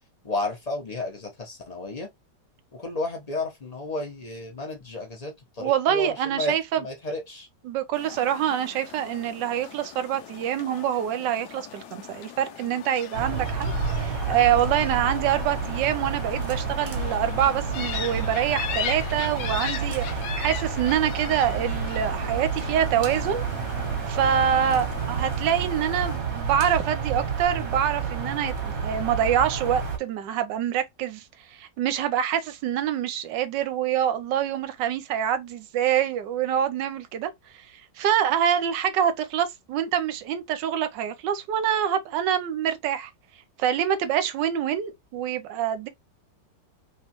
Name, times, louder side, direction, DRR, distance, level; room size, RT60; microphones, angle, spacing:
voice 1, 0.2-2.1 2.7-7.5, left 2 dB, 35° left, 0.7 m, -32 dB
voice 2, 5.6-6.8 7.6-13.7 14.0-23.4 24.1-31.2 31.6-37.3 38.0-43.1 43.6-45.9, right 9 dB, 80° right, 1.3 m, -25 dB
sound 1, 7.9-26.2, left 9 dB, 75° left, 1.2 m, -39 dB
sound 2, 13.1-30.0, right 5 dB, 55° right, 1.4 m, -30 dB
3.3 x 3.0 x 2.9 m
omnidirectional pair, 1.9 m